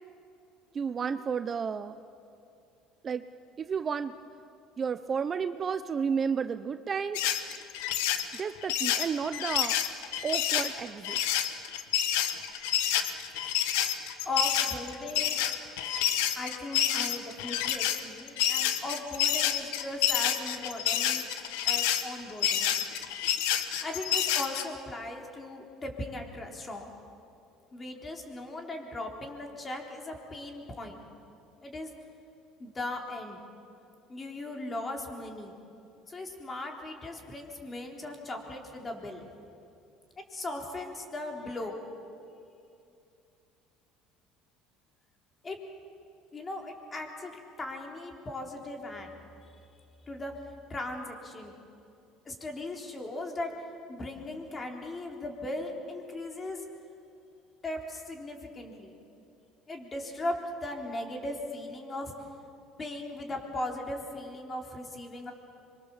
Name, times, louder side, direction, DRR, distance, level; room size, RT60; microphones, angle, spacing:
voice 1, 0.7-1.9 3.0-3.2 3.6-4.1 4.8-7.2 8.3-9.8 10.2-11.2, right 6 dB, 30° right, 11 dB, 0.7 m, -32 dB
sound 1, 7.1-24.6, left 10 dB, 90° left, 1.4 m, -28 dB
voice 2, 12.8-13.5 14.2-15.4 16.3-21.3 21.6-22.7 23.4-26.9 27.7-31.0 31.6-31.9 32.6-33.4 34.1-35.6 36.1-39.3 40.3-41.7 45.4-45.6 46.3-49.2 49.5-49.7 50.1-50.3 50.7-51.6 52.3-53.5 53.9-56.6 57.6-59.0 59.7-62.1 62.8-65.3, left 2 dB, 25° left, 2 dB, 3.8 m, -38 dB
25.0 x 23.5 x 7.3 m, 2.6 s
cardioid pair, 115°, 0 cm